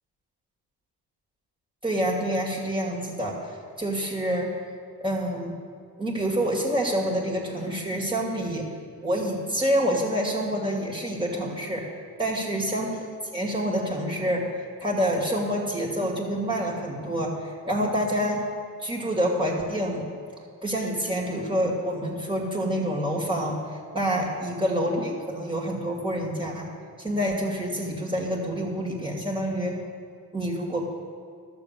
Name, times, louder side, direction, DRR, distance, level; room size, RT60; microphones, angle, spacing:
voice 1, 1.8-4.6 5.0-5.6 6.0-8.6 9.0-11.8 12.2-13.1 13.3-18.4 18.8-20.0 20.6-23.6 23.9-26.7 27.0-29.8 30.3-30.9, equal, 10° right, -3 dB, 2.3 m, -27 dB
12.0 x 7.1 x 6.8 m, 2.1 s
cardioid pair, 90°, 41 cm